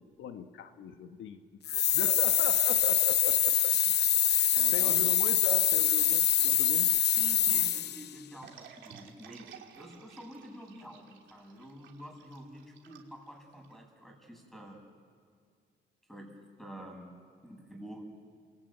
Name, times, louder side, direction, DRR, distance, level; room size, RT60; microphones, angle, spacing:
voice 1, 0.0-3.7 4.3-6.9, left 7 dB, 70° left, 7 dB, 1.3 m, -40 dB
sound 1, 1.6-8.1, left 10 dB, 55° left, 0.8 m, -25 dB
voice 2, 4.5-5.0 7.2-14.8 16.1-17.1 17.4-18.1, equal, ahead, 2 dB, 7.7 m, -48 dB
sound 2, 8.4-13.7, right 8 dB, 70° right, 3.0 m, -54 dB
28.0 x 21.0 x 9.2 m, 2.1 s
cardioid pair, 90°, 20 cm